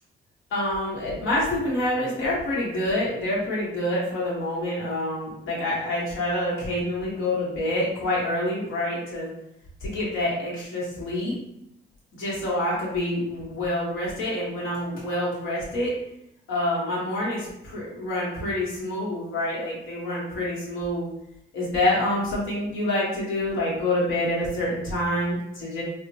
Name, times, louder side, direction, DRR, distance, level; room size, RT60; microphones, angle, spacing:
voice 1, 0.5-9.3 9.8-11.3 12.2-15.9 16.5-21.1 21.5-25.8, left 1 dB, 85° left, -5 dB, 1.3 m, -27 dB
3.5 x 2.1 x 2.8 m, 0.80 s
cardioid pair, 90°, 20 cm